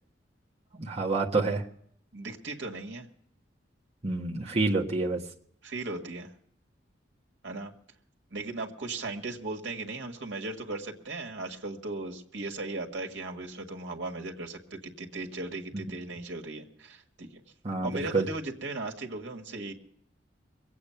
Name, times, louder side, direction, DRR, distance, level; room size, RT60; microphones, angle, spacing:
voice 1, 0.7-1.6 4.0-5.2 15.7-15.8 17.6-18.3, right 3 dB, 35° right, -2 dB, 1.4 m, -28 dB
voice 2, 2.1-3.1 5.6-6.3 7.4-7.7 8.3-17.4 17.8-19.7, right 2 dB, 75° right, 2 dB, 1.8 m, -37 dB
22.0 x 8.5 x 5.8 m, 0.67 s
head